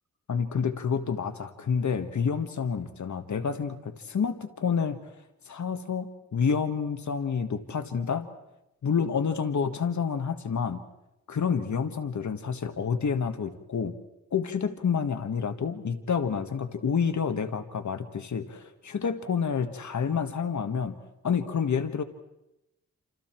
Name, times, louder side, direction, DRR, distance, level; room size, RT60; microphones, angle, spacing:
voice 1, 0.3-5.0 5.5-8.3 8.8-10.8 11.3-13.9 14.3-21.0 21.2-22.0, left 6 dB, 75° left, 8 dB, 1.6 m, -29 dB
28.0 x 28.0 x 4.5 m, 0.91 s
wide cardioid pair, 160°, 30 cm